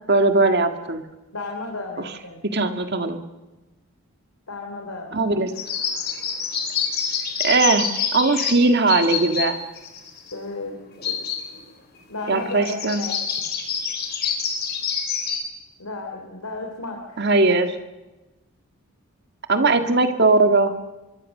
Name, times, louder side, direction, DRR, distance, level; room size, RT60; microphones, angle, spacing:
voice 1, 0.1-1.0 2.0-2.1 2.5-3.2 5.1-5.5 7.4-9.6 12.3-13.0 17.2-17.8 19.5-20.7, right 3 dB, 50° right, 7 dB, 1.9 m, -19 dB
voice 2, 1.3-2.4 4.5-5.2 10.3-11.2 12.1-13.1 15.8-17.2 19.5-19.7, left 2 dB, 90° left, 2 dB, 3.5 m, -34 dB
sound 1, 5.5-9.5 9.7-10.3 11.0-11.6 12.0-12.1 12.3-15.4, left 7 dB, 45° left, 4.0 m, -27 dB
24.5 x 23.5 x 6.7 m, 1.1 s
head